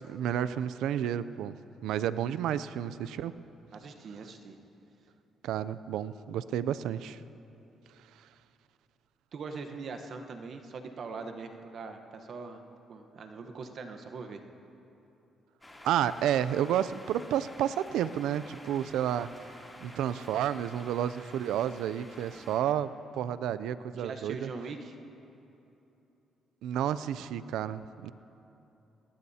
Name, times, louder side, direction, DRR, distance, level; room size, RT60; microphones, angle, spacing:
voice 1, 0.1-1.6 1.8-3.4 5.4-7.2 15.8-24.5 26.6-28.1, right 10 dB, 85° right, 15 dB, 0.4 m, -31 dB
voice 2, 3.7-4.6 9.3-12.6 12.9-14.4 22.3-22.6 23.9-24.9, right 4 dB, 60° right, 6 dB, 1.0 m, -42 dB
sound 1, 15.6-22.6, left 1 dB, 10° left, 2.9 m, -50 dB
20.5 x 19.0 x 2.8 m, 3.0 s
cardioid pair, 90°, 0 cm